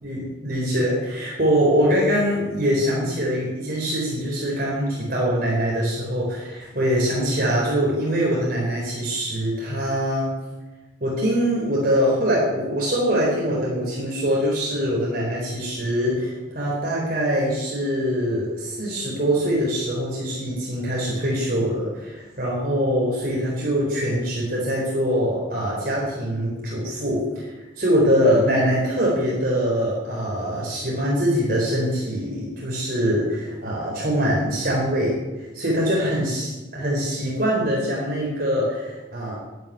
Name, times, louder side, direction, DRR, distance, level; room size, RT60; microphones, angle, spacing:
voice 1, 0.0-10.3 11.0-35.2 35.5-39.4, equal, 50° right, -4 dB, 4.2 m, -23 dB
11.5 x 11.0 x 9.4 m, 1.1 s
head